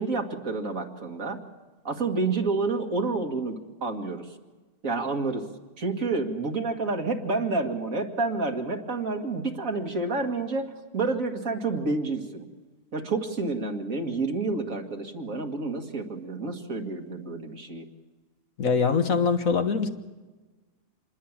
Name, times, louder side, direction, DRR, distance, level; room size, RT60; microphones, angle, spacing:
voice 1, 0.0-1.4 1.8-4.3 4.8-5.5 5.8-10.7 10.9-12.5 12.9-17.9, right 3 dB, 60° right, 3 dB, 2.4 m, -29 dB
voice 2, 18.6-19.9, left 5 dB, 65° left, 7 dB, 1.8 m, -23 dB
27.0 x 21.0 x 7.4 m, 1.2 s
omnidirectional pair, 1.6 m